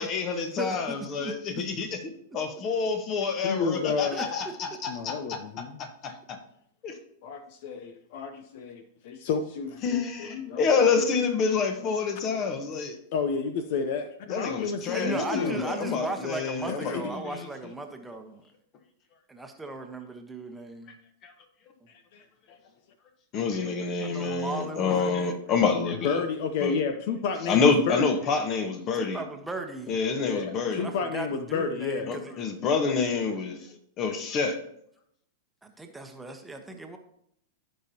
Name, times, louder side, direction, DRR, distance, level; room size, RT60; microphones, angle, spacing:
voice 1, 0.0-2.0 2.3-5.4 5.8-6.4 6.8-6.9 9.8-13.0 14.3-17.5 21.2-21.3 23.3-26.2 26.6-26.8 27.5-29.2 29.9-30.9 32.1-33.6 34.0-34.6, left 5 dB, 40° left, 6 dB, 1.4 m, -27 dB
voice 2, 0.6-1.0 1.2-1.6 4.1-4.8 14.9-18.4 19.3-20.9 24.0-25.4 28.9-30.0 30.8-32.3 35.6-37.0, right 2 dB, 10° right, 4 dB, 1.1 m, -37 dB
voice 3, 3.4-4.2 4.9-5.8 7.2-10.6 13.1-15.6 16.7-17.1 22.1-22.6 26.0-28.0 30.2-32.1, left 5 dB, 55° left, 9 dB, 0.7 m, -31 dB
15.0 x 5.4 x 2.9 m, 0.71 s
hypercardioid pair, 100°, 0 cm